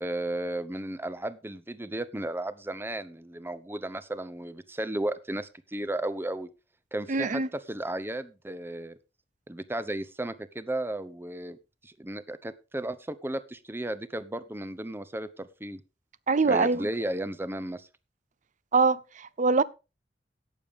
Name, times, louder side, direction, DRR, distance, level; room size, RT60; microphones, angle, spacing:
voice 1, 0.0-6.5 6.9-9.0 9.5-11.6 11.8-15.8 16.5-17.9, right 1 dB, 15° right, 0.8 m, -34 dB
voice 2, 7.1-7.5 16.3-16.8 18.7-19.6, right 4 dB, 45° right, 0.6 m, -23 dB
17.5 x 7.0 x 3.6 m
head